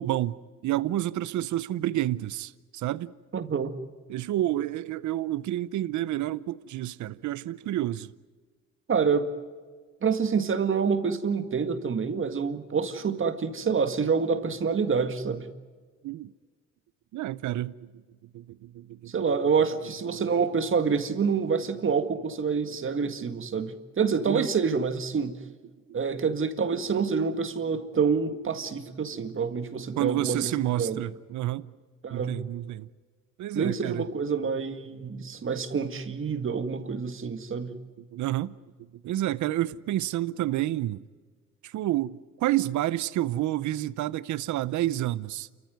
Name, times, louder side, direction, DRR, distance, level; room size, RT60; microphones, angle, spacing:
voice 1, 0.0-3.1 4.1-8.1 16.0-16.3 17.1-17.9 18.3-19.1 22.7-22.8 24.3-24.5 29.3-29.4 29.7-31.7 32.1-32.9 33.4-34.0 37.7-41.0 41.6-45.5, right 14 dB, 75° right, 0.7 m, -30 dB
voice 2, 3.3-3.7 8.9-9.3 10.0-15.5 19.1-25.4 25.9-31.0 32.0-32.3 33.5-37.7, right 5 dB, 45° right, 2.0 m, -27 dB
29.0 x 14.5 x 9.4 m
cardioid pair, 90°, 30 cm